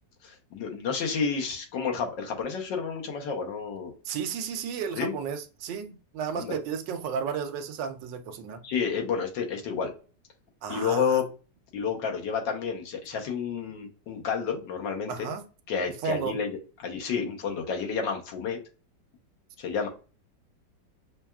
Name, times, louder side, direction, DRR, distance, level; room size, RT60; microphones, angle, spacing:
voice 1, 0.2-3.9 5.0-5.2 6.3-6.6 8.6-9.9 10.7-11.2 11.7-15.3 15.7-18.6 19.6-19.9, left 6 dB, 85° left, 1.6 m, -30 dB
voice 2, 4.1-8.6 10.6-11.2 15.1-15.4 16.0-16.4, right 6 dB, 85° right, 1.3 m, -33 dB
5.8 x 2.3 x 2.3 m
omnidirectional pair, 1.9 m